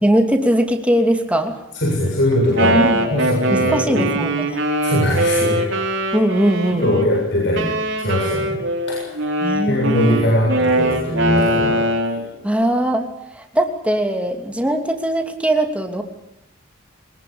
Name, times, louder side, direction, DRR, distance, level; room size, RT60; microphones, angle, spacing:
voice 1, 0.0-1.6 2.6-3.2 3.5-4.6 6.1-6.9 9.4-10.2 12.4-13.1 13.3-16.0, right 1 dB, 5° right, 4 dB, 2.8 m, -20 dB
voice 2, 1.7-4.2 4.8-5.7 6.7-8.6 8.9-9.1 9.7-11.8 12.1-12.3, left 1 dB, 60° left, -2 dB, 7.3 m, -21 dB
Wind instrument woodwind instrument, 2.3-7.1 7.5-12.3, right 1 dB, 65° right, 4.5 m, -21 dB
23.5 x 21.0 x 8.6 m, 0.83 s
head